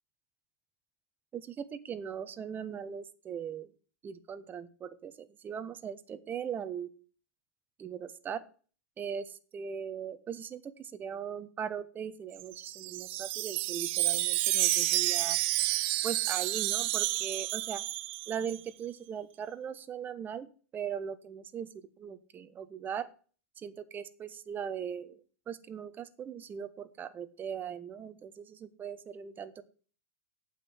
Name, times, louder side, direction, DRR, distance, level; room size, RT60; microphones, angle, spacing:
voice 1, 1.3-3.7 4.0-6.9 7.8-8.4 9.0-15.4 16.0-17.8 18.3-21.7 22.0-23.1 23.6-25.2 25.5-29.6, right 8 dB, 25° right, 11 dB, 1.2 m, -39 dB
Wind chime, 12.4-18.6, right 17 dB, 55° right, 0.7 m, -30 dB
9.0 x 7.8 x 7.9 m, 0.40 s
hypercardioid pair, 100°, 8 cm